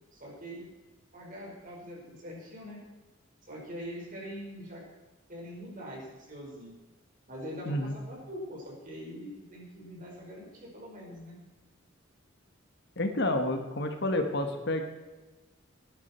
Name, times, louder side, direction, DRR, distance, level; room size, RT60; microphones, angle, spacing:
voice 1, 0.1-0.7 1.1-2.8 3.4-4.8 5.3-6.7 7.3-11.4, equal, 40° right, -2 dB, 5.1 m, -43 dB
voice 2, 13.0-14.8, left 1 dB, 55° left, 5 dB, 1.5 m, -29 dB
18.0 x 11.0 x 4.5 m, 1.2 s
head